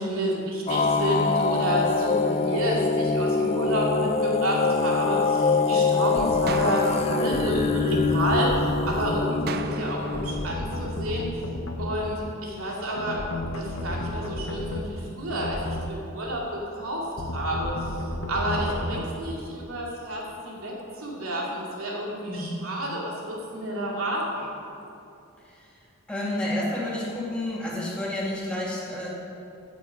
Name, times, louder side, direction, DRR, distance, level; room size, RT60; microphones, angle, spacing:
voice 1, 0.0-11.3 11.8-13.2 13.5-17.9 18.3-24.5, equal, 75° right, -3 dB, 2.6 m, -29 dB
sound 1, 0.7-10.5, left 4 dB, 30° left, 0.4 m, -24 dB
sound 2, 6.2-6.4 7.3-9.2 10.1-12.0 12.9-14.8 15.3-15.8 17.2-19.1, left 1 dB, 65° left, 1.1 m, -32 dB
sound 3, 6.5-8.5 9.5-11.5, right 5 dB, 45° right, 0.4 m, -38 dB
voice 2, 26.1-29.1, left 1 dB, 5° left, -5 dB, 2.1 m, -30 dB
14.5 x 7.1 x 5.3 m, 2.7 s
head